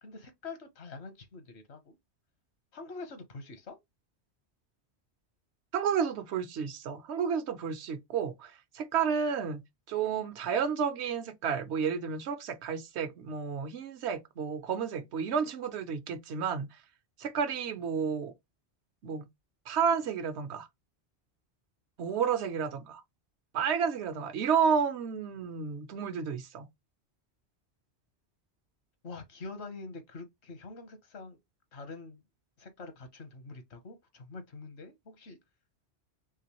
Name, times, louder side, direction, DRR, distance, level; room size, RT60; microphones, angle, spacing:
voice 1, 0.0-2.0 2.7-3.8 29.0-31.4 31.7-32.2 32.6-35.4, left 3 dB, 70° left, 1.2 m, -45 dB
voice 2, 5.7-9.6 9.9-16.7 17.2-18.3 19.0-19.3 19.7-20.7 22.0-23.0 23.5-26.7, right 6 dB, 75° right, 1.0 m, -31 dB
3.7 x 3.3 x 2.9 m
omnidirectional pair, 1.1 m